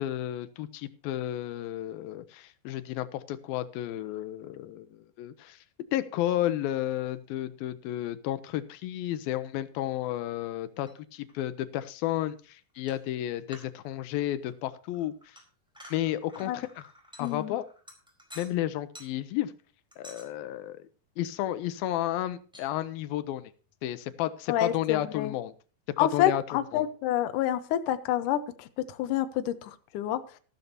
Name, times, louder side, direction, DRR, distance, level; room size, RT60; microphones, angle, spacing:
voice 1, 0.0-5.6 5.9-15.1 15.9-16.9 17.2-17.7 18.4-19.5 20.0-20.9 21.2-23.5 23.8-25.5 26.0-26.4 26.7-26.8, left 13 dB, 85° left, 13 dB, 2.6 m, -32 dB
sound 1, 10.8-11.0 11.3-11.4 12.7-13.1 13.5-14.3 14.5-18.6 18.9-19.1 19.9-20.3 22.5-22.7, equal, ahead, 3.8 m, -51 dB
voice 2, 17.2-17.6 24.5-25.3 26.0-30.2, left 11 dB, 70° left, 10 dB, 2.2 m, -28 dB
14.0 x 13.5 x 2.8 m, 0.38 s
omnidirectional pair, 4.2 m